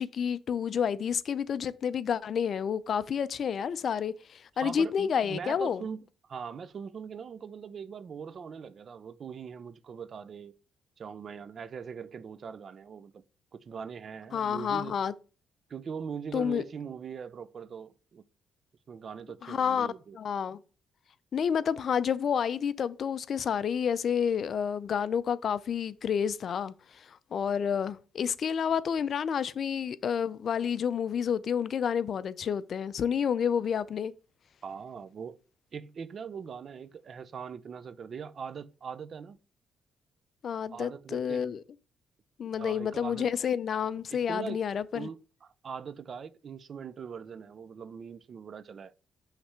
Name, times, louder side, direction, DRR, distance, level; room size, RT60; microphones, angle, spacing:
voice 1, 0.0-5.8 14.3-15.1 16.3-16.6 19.4-20.6 21.3-34.1 40.4-41.6 42.4-45.1, left 7 dB, 55° left, 0.4 m, -30 dB
voice 2, 4.6-10.5 11.0-13.2 13.5-14.9 15.7-18.2 18.9-20.2 34.6-35.4 35.7-39.4 40.7-41.5 42.6-43.3 44.1-44.6 44.9-48.9, right 6 dB, 50° right, 0.5 m, -41 dB
5.7 x 3.3 x 5.5 m
cardioid pair, 90°, 0 cm